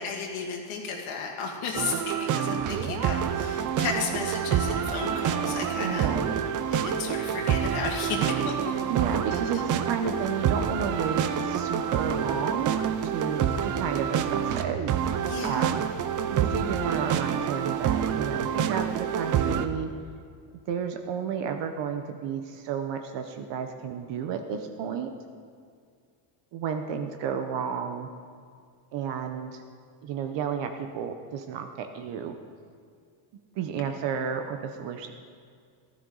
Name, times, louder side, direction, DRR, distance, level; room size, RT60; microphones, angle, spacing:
voice 1, 0.0-6.1 6.7-8.6 9.3-9.6 10.0-10.3 15.2-15.8, left 5 dB, 85° left, -1 dB, 2.0 m, -34 dB
sound 1, 1.7-19.7, right 8 dB, 40° right, 0.5 m, -27 dB
voice 2, 5.8-6.3 8.9-15.8 16.4-19.9 20.7-25.1 26.5-28.1 28.9-29.6 30.0-32.4 33.6-35.1, right 7 dB, 60° right, 6 dB, 0.9 m, -32 dB
15.0 x 12.5 x 3.9 m, 2.2 s
cardioid pair, 175°, 49 cm